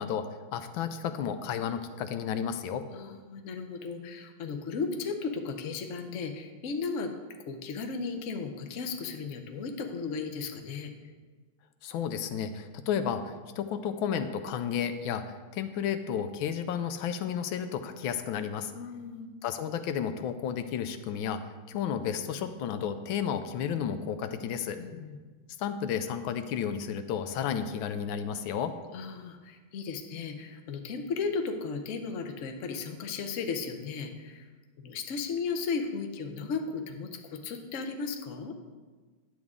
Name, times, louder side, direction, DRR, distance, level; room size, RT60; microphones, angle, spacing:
voice 1, 0.0-2.8 11.8-18.7 19.4-21.4 21.7-24.8 25.6-28.8, left 8 dB, 80° left, 9 dB, 1.3 m, -32 dB
voice 2, 2.9-7.1 7.5-10.9 18.7-19.3 24.8-25.2 28.9-34.5 34.8-38.5, left 5 dB, 60° left, 5 dB, 0.8 m, -35 dB
10.0 x 8.0 x 3.6 m, 1.4 s
omnidirectional pair, 2.3 m